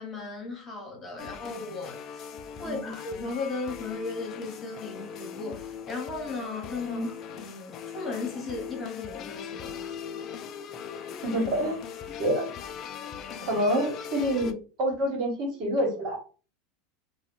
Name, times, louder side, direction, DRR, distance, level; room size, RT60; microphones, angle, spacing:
voice 1, 0.0-2.3 2.6-7.0 7.3-9.9, left 3 dB, 25° left, 1.2 m, -36 dB
sound 1, 1.2-14.5, left 7 dB, 45° left, 0.3 m, -40 dB
voice 2, 11.2-11.8 12.2-12.5 13.4-16.2, equal, 55° right, 1.3 m, -27 dB
2.2 x 2.2 x 3.7 m
supercardioid pair, 120°, 0 cm